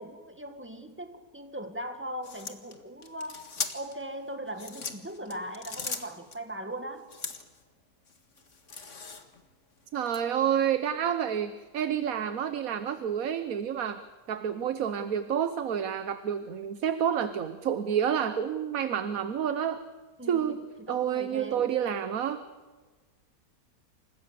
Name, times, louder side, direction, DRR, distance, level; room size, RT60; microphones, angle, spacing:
voice 1, 0.0-7.1 20.2-21.7, right 1 dB, 10° right, 7 dB, 1.8 m, -39 dB
sound 1, 2.2-4.0 4.5-6.4 7.1-7.6 8.1-9.4 10.1-10.2, left 4 dB, 50° left, 2.1 m, -39 dB
voice 2, 9.9-14.0 14.3-19.8 20.3-22.4, right 8 dB, 65° right, 10 dB, 1.4 m, -29 dB
29.0 x 26.0 x 7.0 m, 1.4 s
omnidirectional pair, 1.6 m